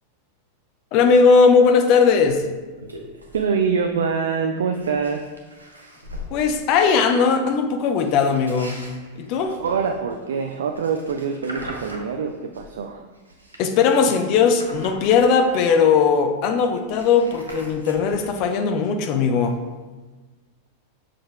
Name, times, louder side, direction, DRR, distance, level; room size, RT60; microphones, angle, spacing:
voice 1, 0.9-2.4 6.3-8.9 9.2-9.6 13.6-19.6, left 5 dB, 40° left, 6 dB, 0.7 m, -18 dB
sound 1, 2.2-2.3 2.7-3.5 3.8-4.0 4.6-6.3 8.0-12.8 13.1-15.8 16.2-16.3 16.5-18.5, equal, 80° right, 0.9 m, -41 dB
voice 2, 3.3-5.3 9.6-13.0, right 6 dB, 65° right, 5 dB, 0.4 m, -24 dB
7.4 x 6.6 x 2.2 m, 1.3 s
figure-of-eight pair, 90°, 0 cm